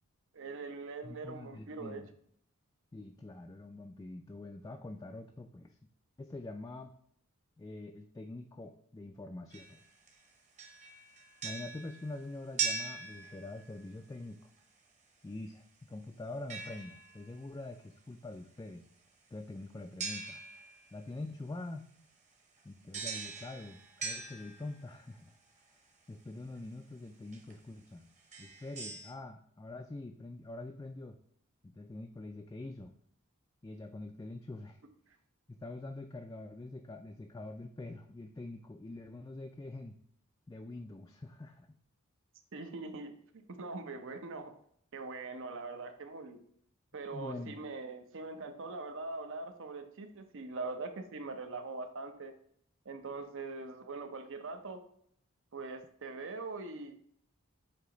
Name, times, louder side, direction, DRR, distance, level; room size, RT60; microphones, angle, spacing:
voice 1, 0.3-2.0 42.5-44.5 44.9-46.4 46.9-52.3 52.9-54.8 55.5-56.9, right 3 dB, 65° right, 7 dB, 0.7 m, -42 dB
voice 2, 1.0-2.1 2.9-5.8 6.2-6.9 7.6-9.8 11.4-14.5 15.2-18.8 19.3-20.4 20.9-21.9 22.6-25.4 25.7-25.8 26.1-28.1 28.4-31.2 31.7-32.9 33.6-34.8 35.5-40.0 40.5-41.8 47.1-47.6, left 2 dB, 15° left, 5 dB, 0.3 m, -45 dB
sound 1, 9.5-10.2 10.6-13.9 16.5-17.4 20.0-21.0 22.9-25.0 26.6-26.7 27.3-27.5 28.2-29.1, right 5 dB, 35° right, 1.2 m, -41 dB
8.1 x 2.8 x 5.0 m, 0.66 s
head